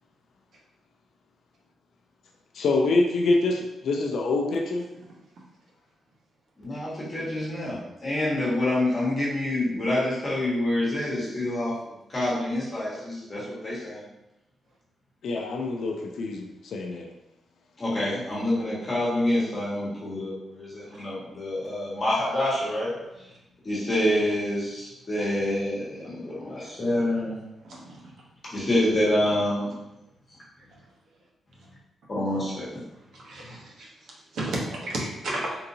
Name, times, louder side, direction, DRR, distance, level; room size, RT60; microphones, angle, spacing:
voice 1, 2.5-4.8 15.2-17.1, left 3 dB, 60° left, 2 dB, 0.4 m, -25 dB
voice 2, 6.6-14.0 17.8-22.9 23.6-27.4 28.5-29.7 32.1-32.8, left 1 dB, 25° left, -7 dB, 1.3 m, -27 dB
voice 3, 27.6-28.0 32.3-32.4 33.1-33.9 34.3-35.5, right 1 dB, 70° right, -3 dB, 0.9 m, -33 dB
3.7 x 2.7 x 2.7 m, 0.92 s
wide cardioid pair, 155°, 0 cm